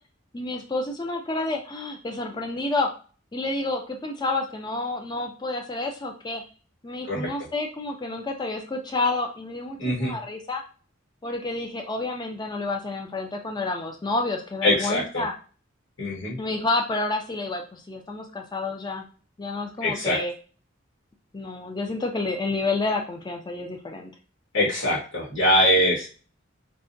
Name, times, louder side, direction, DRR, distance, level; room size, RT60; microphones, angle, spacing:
voice 1, 0.3-2.9 3.3-6.4 6.8-10.6 11.2-15.3 16.4-19.0 19.4-20.3 21.3-24.1, left 2 dB, 20° left, 2 dB, 0.5 m, -29 dB
voice 2, 9.8-10.1 14.6-15.2 16.0-16.4 19.8-20.2 24.5-26.1, left 1 dB, 80° left, -5 dB, 1.5 m, -23 dB
4.6 x 2.1 x 2.6 m, 0.37 s
head